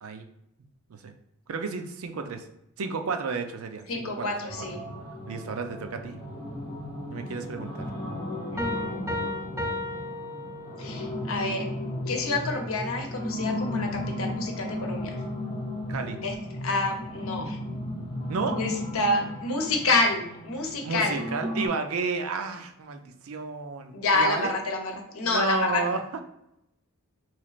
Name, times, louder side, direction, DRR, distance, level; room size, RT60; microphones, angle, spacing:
voice 1, 1.5-2.5 2.8-4.7 5.3-6.2 7.1-7.9 15.9-16.2 18.3-18.6 20.8-24.5 25.2-26.0, right 4 dB, 80° right, 6 dB, 0.5 m, -31 dB
voice 2, 3.9-4.8 8.5-9.9 10.8-11.7 12.1-15.2 16.2-16.3 16.6-17.6 18.5-21.2 23.9-25.8, left 2 dB, 75° left, 3 dB, 0.8 m, -28 dB
sound 1, 4.5-21.7, left 1 dB, 40° left, 0.8 m, -35 dB
Piano, 8.6-11.1, left 1 dB, 10° right, 0.7 m, -33 dB
3.9 x 3.2 x 2.4 m, 0.82 s
head